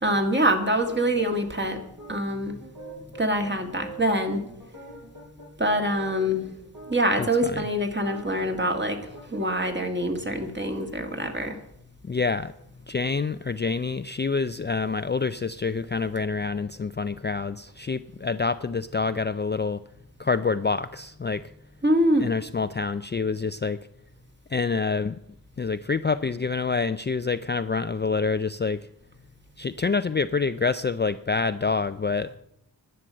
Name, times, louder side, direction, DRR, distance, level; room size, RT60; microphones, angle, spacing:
voice 1, 0.0-1.8 2.1-2.6 3.2-4.4 5.6-6.4 6.9-9.0 9.3-11.6 21.8-22.3, equal, 30° right, 4 dB, 2.0 m, -24 dB
sound 1, 0.8-7.5 7.9-9.7, right 1 dB, 60° right, 5.2 m, -44 dB
voice 2, 7.2-7.7 12.0-12.5 12.9-19.8 20.2-21.5 22.2-23.8 24.5-25.2 25.6-28.9 29.6-32.4, left 4 dB, 30° left, 11 dB, 0.4 m, -27 dB
11.5 x 9.0 x 7.5 m, 0.76 s
wide cardioid pair, 85°, 38 cm